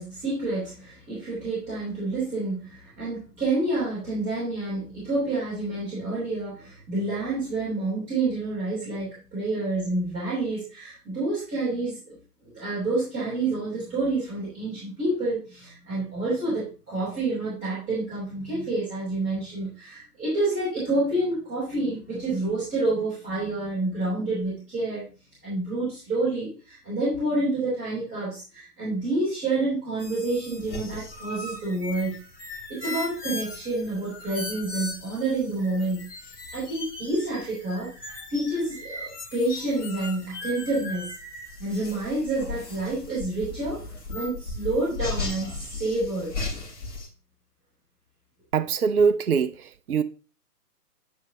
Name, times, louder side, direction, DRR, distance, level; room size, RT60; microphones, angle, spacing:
voice 1, 0.0-12.2 12.4-25.0 25.4-32.1 32.7-41.1 41.6-43.8 44.1-46.3, right 2 dB, 15° right, 3.2 m, -28 dB
sound 1, 30.0-47.1, left 3 dB, 50° left, 3.3 m, -37 dB
voice 2, 48.5-50.0, right 6 dB, 65° right, 0.6 m, -23 dB
9.3 x 5.3 x 2.7 m
figure-of-eight pair, 135°, 48 cm